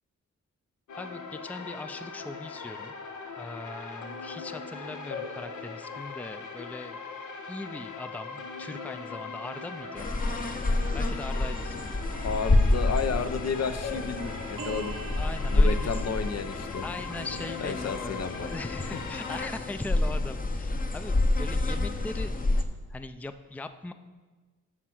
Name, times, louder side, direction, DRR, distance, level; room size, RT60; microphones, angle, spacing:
sound 1, 0.9-19.4, left 5 dB, 80° left, 1.0 m, -40 dB
voice 1, 0.9-2.9 3.4-7.0 7.5-10.1 10.9-11.9 15.2-15.9 16.8-18.2 18.5-23.9, left 2 dB, 5° left, 10 dB, 0.4 m, -40 dB
sound 2, 9.8-16.4, right 8 dB, 80° right, 1.0 m, -48 dB
sound 3, 10.0-22.6, left 2 dB, 30° left, 0.8 m, -28 dB
voice 2, 12.2-15.0 15.5-16.8 17.6-18.5, left 5 dB, 55° left, 10 dB, 0.7 m, -32 dB
12.5 x 4.6 x 6.0 m, 1.3 s
cardioid pair, 85°, 30 cm